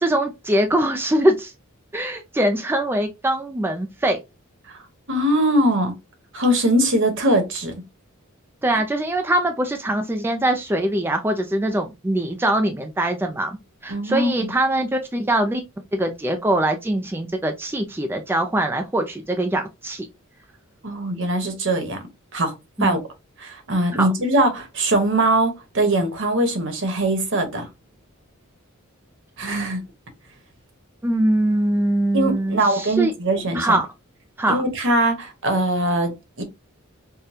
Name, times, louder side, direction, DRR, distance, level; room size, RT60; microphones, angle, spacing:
voice 1, 0.0-1.5 1.9-4.2 8.6-13.6 13.8-15.6 15.9-20.1 22.8-23.0 23.9-24.1 31.0-33.1 33.5-33.9 34.4-34.6, right 1 dB, 10° right, 0.4 m, -22 dB
voice 2, 5.1-5.9 6.3-7.8 13.9-14.5 20.8-22.0 22.3-22.5 22.8-23.0 23.4-27.7 29.4-29.8 32.1-33.8 34.5-36.4, right 1 dB, 60° right, 1.1 m, -21 dB
5.0 x 2.2 x 2.7 m
head